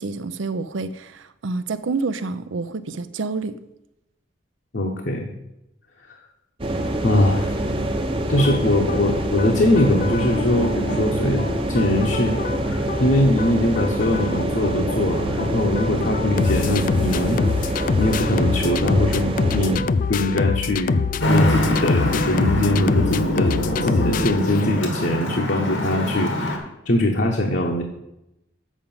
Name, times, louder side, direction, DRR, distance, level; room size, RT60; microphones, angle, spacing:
voice 1, 0.0-3.6, right 3 dB, 85° right, 13 dB, 0.6 m, -28 dB
voice 2, 4.7-5.3 7.0-7.6 8.3-17.4 18.0-27.8, left 1 dB, 60° left, 0 dB, 0.9 m, -22 dB
sound 1, 6.6-19.8, right 1 dB, 30° right, 0.8 m, -25 dB
sound 2, 8.4-25.0, left 5 dB, 45° left, 0.3 m, -26 dB
Traffic noise roadway noise, 21.2-26.6, equal, 85° left, 1.6 m, -24 dB
7.3 x 5.1 x 7.2 m, 0.87 s
head